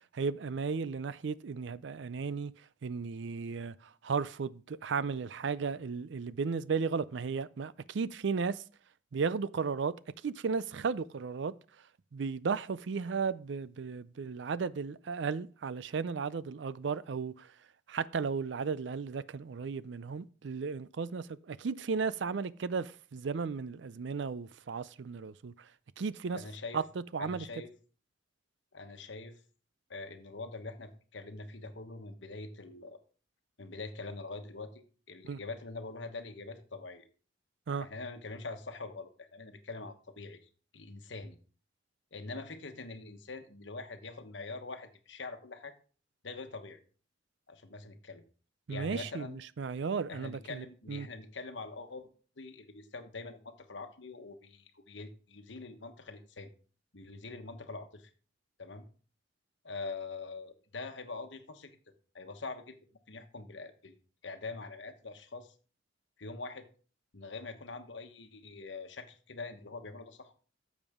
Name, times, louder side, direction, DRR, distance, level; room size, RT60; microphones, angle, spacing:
voice 1, 0.1-2.5 2.8-3.7 4.0-8.6 9.1-10.0 10.2-11.5 12.1-17.5 17.9-25.5 26.0-26.4 26.7-26.8 27.1-27.4 35.2-35.4 37.7-37.9 48.7-51.1, right 5 dB, 70° right, 0.4 m, -35 dB
voice 2, 26.3-26.8 27.2-27.7 28.7-29.4 29.9-33.0 33.6-37.0 37.8-40.4 40.7-41.4 42.1-45.7 46.2-46.8 47.5-48.2 48.7-49.4 50.1-52.1 52.4-56.5 56.9-58.1 58.6-58.8 59.6-61.8 62.1-62.8 63.1-63.9 64.2-65.5 66.2-66.7 67.1-70.3, left 3 dB, 70° left, 1.2 m, -44 dB
12.0 x 7.3 x 3.6 m
head